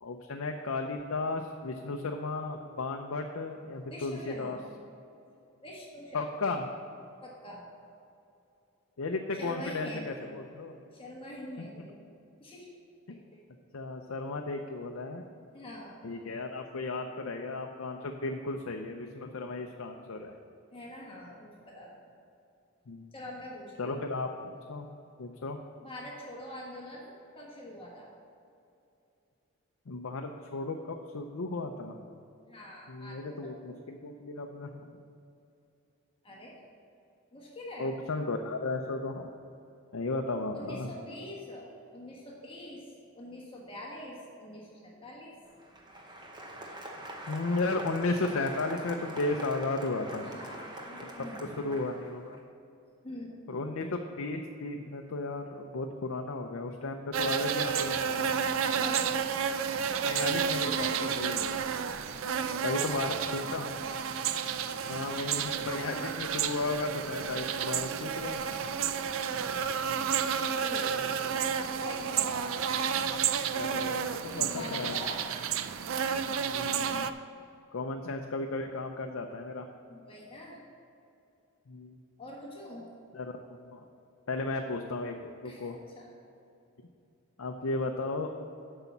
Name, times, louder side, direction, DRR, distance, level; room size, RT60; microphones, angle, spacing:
voice 1, 0.0-4.6 6.1-6.7 9.0-10.8 11.6-11.7 13.1-13.2 13.7-15.2 16.0-20.3 22.9-23.1 23.8-24.9 25.2-25.6 29.9-32.0 32.9-34.9 37.8-39.3 39.9-40.9 47.3-50.3 51.6-52.4 53.5-58.4 60.0-61.6 62.6-63.7 64.9-68.4 73.5-75.0 76.5-77.1 77.7-79.7 81.7-82.0 83.1-83.8 84.3-85.2 85.4-85.8 87.4-88.3, left 3 dB, 65° left, 3 dB, 0.5 m, -34 dB
voice 2, 3.9-4.6 5.6-6.3 7.2-7.6 9.3-10.3 10.9-12.0 12.4-12.7 15.5-16.1 20.7-22.0 23.1-24.0 25.8-28.1 32.5-33.5 36.2-36.5 37.3-37.9 40.5-42.8 43.1-45.3 50.2-51.6 53.0-53.3 58.7-59.3 62.2-63.1 70.2-71.0 71.8-72.6 74.2-75.2 79.9-80.6 82.2-82.9 85.4-86.1, left 1 dB, 25° left, -3 dB, 1.4 m, -44 dB
Applause, 45.5-52.4, right 1 dB, 20° right, 0.8 m, -44 dB
sound 1, 57.1-77.1, right 7 dB, 60° right, 0.4 m, -31 dB
7.9 x 5.6 x 7.1 m, 2.7 s
head